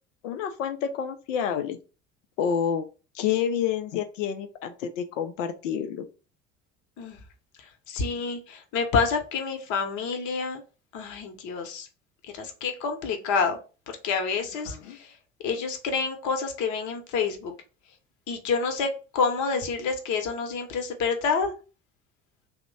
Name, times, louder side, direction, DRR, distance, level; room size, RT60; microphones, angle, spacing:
voice 1, 0.2-1.8 2.4-2.9 3.1-6.1 14.7-15.0, left 8 dB, 75° left, 8 dB, 0.5 m, -28 dB
voice 2, 7.6-10.6 10.9-11.9 12.2-13.6 13.9-15.2 15.4-17.5 18.3-21.5, left 5 dB, 50° left, 5 dB, 0.9 m, -28 dB
2.9 x 2.1 x 3.9 m, 0.34 s
figure-of-eight pair, 65°, 37 cm